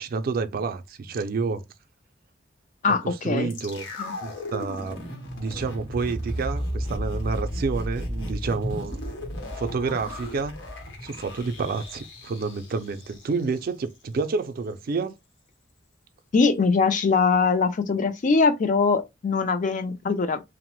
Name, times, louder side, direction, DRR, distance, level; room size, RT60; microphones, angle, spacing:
voice 1, 0.0-1.6 2.9-3.9 4.2-5.0 5.3-9.0 9.5-10.5 11.0-15.1, right 4 dB, 50° right, 0.4 m, -29 dB
voice 2, 2.8-3.5 4.0-4.1 16.3-20.4, left 4 dB, 45° left, 0.4 m, -22 dB
sound 1, 3.5-13.6 13.9-14.0, equal, 85° left, 0.9 m, -34 dB
2.8 x 2.0 x 3.0 m
head